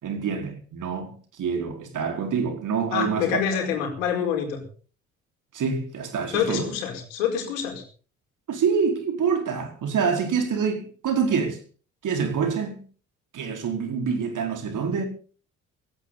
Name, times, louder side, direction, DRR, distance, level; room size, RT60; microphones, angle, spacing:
voice 1, 0.0-3.3 5.5-6.7 8.5-11.6 12.0-12.8 13.3-15.1, right 6 dB, 50° right, 4.9 m, -26 dB
voice 2, 2.9-4.6 6.3-7.8, left 8 dB, 75° left, 5.0 m, -26 dB
17.5 x 17.5 x 4.1 m
figure-of-eight pair, 50°, 40 cm